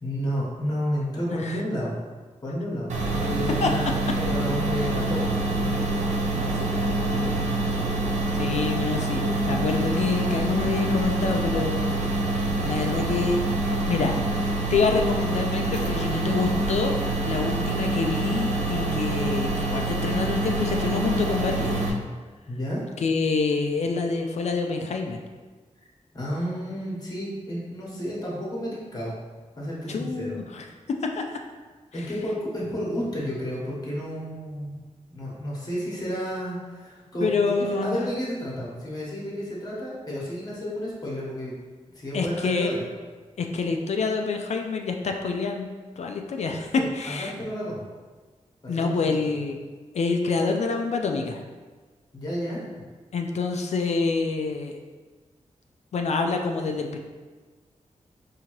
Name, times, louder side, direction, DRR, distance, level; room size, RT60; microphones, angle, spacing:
voice 1, 0.0-1.9 2.4-7.5 22.4-22.8 26.1-29.1 29.6-30.4 31.9-34.7 35.1-37.3 37.7-41.5 41.9-42.8 46.8-47.8 48.6-49.1 52.1-52.6, equal, 30° left, -5 dB, 1.1 m, -31 dB
voice 2, 1.3-1.6 3.6-3.7 8.4-11.8 12.6-13.4 13.9-14.2 14.7-17.0 17.2-22.0 23.0-25.2 29.9-31.3 37.2-38.0 42.1-42.7 43.4-45.7 46.0-47.3 48.7-49.6 49.9-51.4 53.1-54.8 55.9-57.0, left 4 dB, 65° left, 3 dB, 0.4 m, -26 dB
sound 1, 2.9-21.9, right 2 dB, 65° right, 0.7 m, -26 dB
5.0 x 2.7 x 3.0 m, 1.4 s
wide cardioid pair, 140°, 12 cm